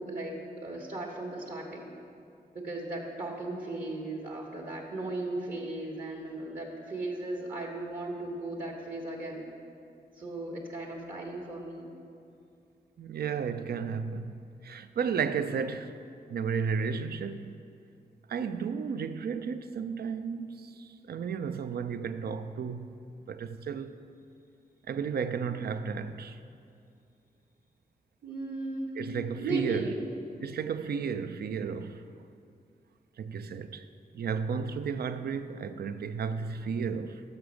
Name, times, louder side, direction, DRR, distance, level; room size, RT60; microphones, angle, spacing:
voice 1, 0.0-1.9 2.5-9.5 10.2-11.9 28.2-30.2, right 2 dB, 50° right, 1.2 m, -36 dB
voice 2, 13.0-14.3 14.6-16.0 16.3-17.5 18.3-23.0 23.3-23.9 24.9-26.4 29.0-29.9 30.4-32.0 33.2-33.9 34.1-37.2, right 6 dB, 75° right, 0.4 m, -33 dB
6.5 x 5.9 x 6.3 m
cardioid pair, 55°, 17 cm